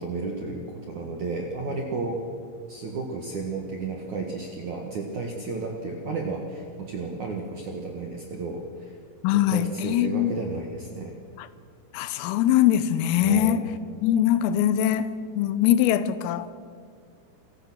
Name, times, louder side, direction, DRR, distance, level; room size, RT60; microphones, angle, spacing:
voice 1, 0.0-2.2 2.7-8.9 9.3-11.1 13.2-13.6, right 3 dB, 65° right, 1.9 m, -32 dB
voice 2, 9.2-10.4 11.4-11.5 11.9-13.7 14.0-16.5, left 11 dB, 85° left, 3.4 m, -22 dB
27.0 x 16.0 x 6.2 m
omnidirectional pair, 6.0 m